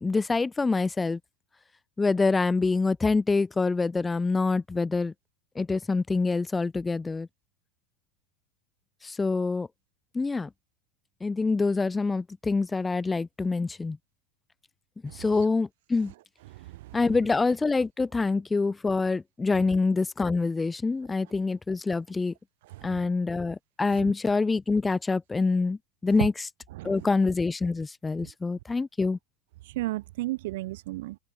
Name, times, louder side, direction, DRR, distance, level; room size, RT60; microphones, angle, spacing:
voice 1, 0.0-1.2 2.0-5.1 5.6-7.3 9.0-9.7 10.1-10.5 11.2-14.0 15.1-16.1 16.9-22.3 22.8-26.5 26.8-29.2, left 3 dB, 15° left, 0.5 m, -26 dB
voice 2, 16.5-17.0 22.7-22.9 23.9-24.1 26.8-26.9 29.7-31.2, right 18 dB, 60° right, 0.4 m, -34 dB
figure-of-eight pair, 85°, 0 cm